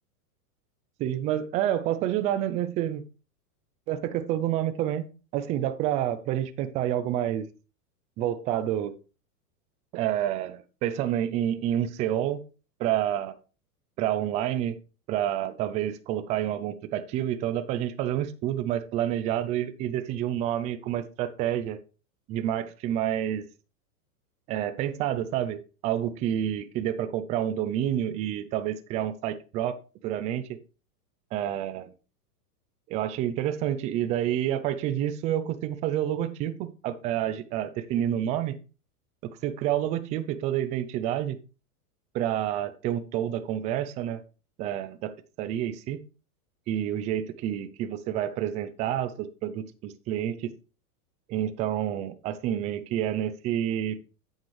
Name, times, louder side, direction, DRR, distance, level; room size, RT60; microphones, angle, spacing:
voice 1, 1.0-3.0 3.9-7.5 8.2-8.9 9.9-12.4 12.8-13.4 14.0-14.8 15.1-21.8 22.3-23.4 24.5-29.8 30.0-30.5 31.3-31.9 32.9-38.6 39.4-41.4 42.1-44.2 44.6-46.0 46.7-50.5 51.3-54.0, right 11 dB, 15° right, 0.3 m, -29 dB
8.7 x 8.0 x 3.2 m
hypercardioid pair, 135°, 47 cm